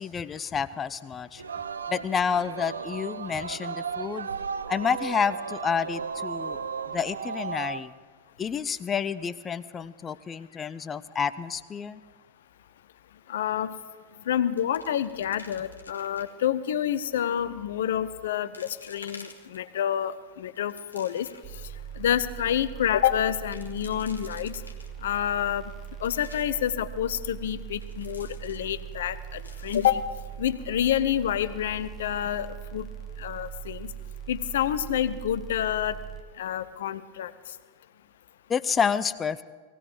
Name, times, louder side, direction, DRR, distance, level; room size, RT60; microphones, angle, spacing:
voice 1, 0.0-1.4 1.9-4.3 4.7-6.6 6.9-7.9 8.4-12.0 38.5-39.4, left 6 dB, 20° left, 15 dB, 0.6 m, -29 dB
Singing, 1.4-7.8, right 6 dB, 70° right, 0.5 m, -35 dB
voice 2, 13.3-13.7 14.3-21.3 22.0-24.6 25.0-25.6 26.0-30.0 30.4-32.9 33.2-33.9 34.3-36.0 36.4-37.3, left 10 dB, 60° left, 14 dB, 0.7 m, -28 dB
sound 1, 14.1-14.2 14.4-16.5 17.1-17.5 18.0-18.1 18.5-19.9 20.3-21.6 22.0-22.1 22.3-22.6 23.3-25.2 25.7-26.7 27.8-29.0 29.3-30.8 31.1-31.2 31.7-32.0, left 4 dB, 80° left, 1.2 m, -50 dB
sound 2, 21.4-36.2, right 9 dB, 20° right, 1.0 m, -40 dB
19.0 x 16.5 x 4.7 m, 1.5 s
figure-of-eight pair, 90°, 0 cm